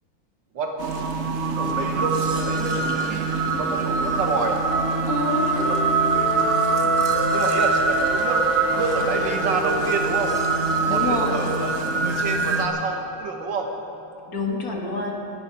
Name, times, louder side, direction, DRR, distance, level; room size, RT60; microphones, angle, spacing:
sound 1, 0.8-12.7, right 4 dB, 45° right, 1.0 m, -24 dB
voice 1, 1.5-4.6 5.6-5.7 6.3-6.4 7.3-8.4 8.7-10.4 10.9-11.7 12.0-13.7, right 3 dB, 65° right, 3 dB, 1.9 m, -28 dB
sound 2, 3.3-7.4 8.0-12.2, right 1 dB, 30° left, 2.1 m, -34 dB
sound 3, 4.7-9.1, right 2 dB, ahead, 1.7 m, -27 dB
voice 2, 5.1-5.6 10.9-11.4 14.3-15.2, left 3 dB, 45° left, 0 dB, 2.0 m, -27 dB
17.5 x 11.5 x 5.8 m, 2.9 s
omnidirectional pair, 2.2 m